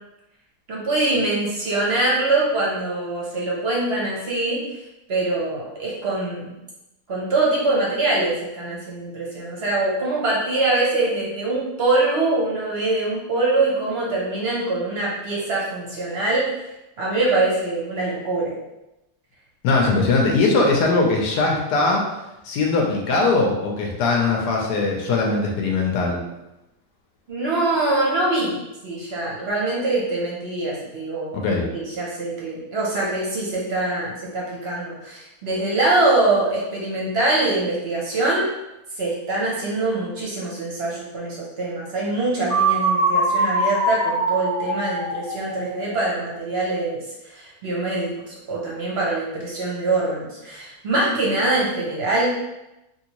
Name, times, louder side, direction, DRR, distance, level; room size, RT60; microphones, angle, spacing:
voice 1, 0.7-4.6 5.1-6.5 7.1-16.5 17.0-18.5 27.3-28.6 28.8-31.3 31.7-38.5 39.0-47.0 47.3-52.5, right 2 dB, 55° right, -4 dB, 0.8 m, -23 dB
voice 2, 19.6-22.0 22.4-26.2 31.3-31.6, left 3 dB, 85° left, 0 dB, 1.2 m, -20 dB
sound 1, 42.5-46.4, right 2 dB, 10° left, 0.4 m, -23 dB
3.1 x 2.7 x 2.9 m, 0.94 s
omnidirectional pair, 1.7 m